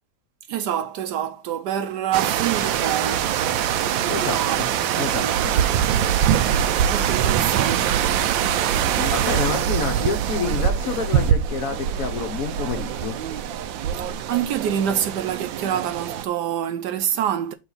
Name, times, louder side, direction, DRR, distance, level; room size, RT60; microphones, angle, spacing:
voice 1, 0.5-4.6 4.8-5.7 6.9-8.1 14.0-17.5, right 9 dB, 70° right, 1.1 m, -27 dB
sound 1, 2.1-16.2, right 9 dB, 90° right, 1.4 m, -23 dB
voice 2, 4.1-4.7 5.0-5.5 9.0-13.2, left 5 dB, 55° left, 1.3 m, -28 dB
6.1 x 3.3 x 5.5 m
omnidirectional pair, 2.0 m